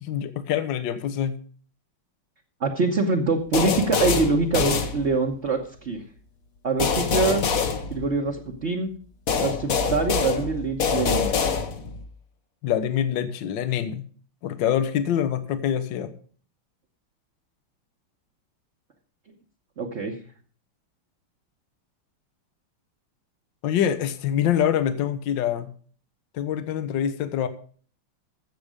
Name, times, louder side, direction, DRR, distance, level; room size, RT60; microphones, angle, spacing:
voice 1, 0.0-1.4 12.6-14.0 14.4-16.1 23.6-25.7 26.3-27.5, left 9 dB, 65° left, 11 dB, 1.6 m, -25 dB
voice 2, 2.6-6.0 6.6-7.4 7.9-8.9 9.4-11.3 19.8-20.1, right 3 dB, 40° right, 1 dB, 1.1 m, -24 dB
sound 1, 3.5-5.5 6.8-8.6 9.3-12.1, left 5 dB, 50° left, 1.2 m, -25 dB
15.0 x 6.8 x 5.1 m, 0.44 s
omnidirectional pair, 2.3 m